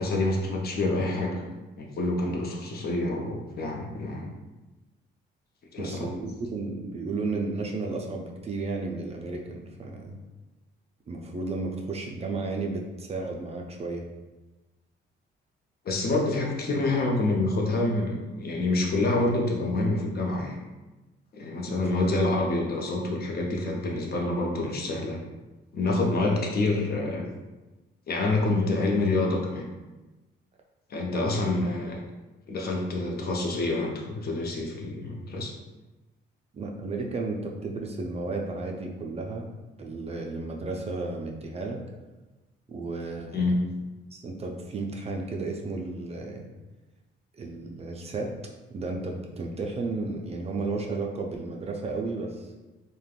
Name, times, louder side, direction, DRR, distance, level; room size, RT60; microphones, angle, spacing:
voice 1, 0.0-1.4 1.8-4.3 5.7-6.1 15.8-20.6 21.3-25.2 25.7-27.3 28.1-29.7 30.9-32.0 32.5-35.5 43.3-43.6, left 2 dB, 50° left, -1 dB, 0.6 m, -27 dB
voice 2, 5.8-10.2 11.1-14.0 21.6-21.9 31.1-31.5 36.5-41.8 42.7-43.4 44.1-46.5 47.4-48.3 48.7-52.6, right 3 dB, 30° right, 1 dB, 0.4 m, -33 dB
3.3 x 2.2 x 2.3 m, 1.1 s
cardioid pair, 90°, 20 cm